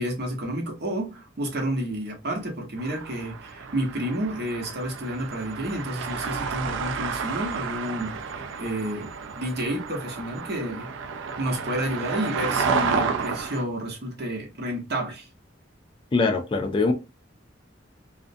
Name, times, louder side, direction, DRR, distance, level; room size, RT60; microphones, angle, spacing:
voice 1, 0.0-10.9 11.4-15.3, right 1 dB, 55° right, 0.8 m, -30 dB
sound 1, 2.8-13.6, right 5 dB, 75° right, 0.4 m, -31 dB
voice 2, 16.1-16.9, left 3 dB, 25° left, 0.3 m, -22 dB
2.4 x 2.1 x 2.6 m
head